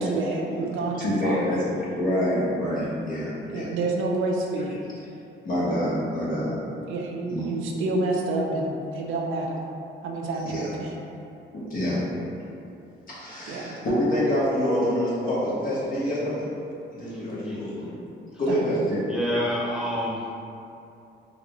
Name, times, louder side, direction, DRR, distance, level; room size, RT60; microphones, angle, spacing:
voice 1, 0.0-1.4 3.5-4.8 6.9-9.6 10.0-10.9 13.5-13.7 18.5-18.7, right 2 dB, 80° right, 0 dB, 0.5 m, -28 dB
voice 2, 1.0-3.7 5.4-6.5 7.3-7.5 10.4-10.7 11.5-12.0 13.1-16.5 16.9-17.9 18.4-19.0, equal, 45° left, -9 dB, 1.3 m, -26 dB
voice 3, 17.1-17.6 19.1-20.3, equal, 5° right, -6 dB, 0.5 m, -28 dB
3.7 x 2.2 x 3.0 m, 2.7 s
cardioid pair, 90°, 20 cm